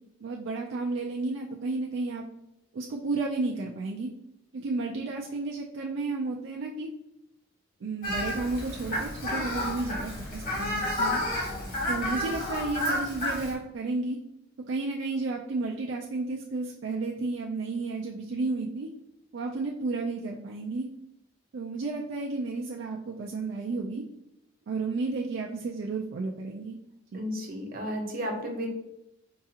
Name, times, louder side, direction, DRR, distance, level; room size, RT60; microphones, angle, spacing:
voice 1, 0.2-2.2 2.7-4.1 4.5-6.9 7.8-11.2 11.9-14.2 14.7-18.9 19.3-20.9 21.5-24.0 24.7-26.8 27.1-27.2, right 3 dB, 70° right, -1 dB, 0.4 m, -32 dB
Fowl, 8.0-13.5, left 1 dB, 50° left, 1.2 m, -31 dB
voice 2, 27.1-28.7, equal, 50° right, 1 dB, 0.9 m, -33 dB
4.6 x 2.4 x 2.8 m, 0.86 s
head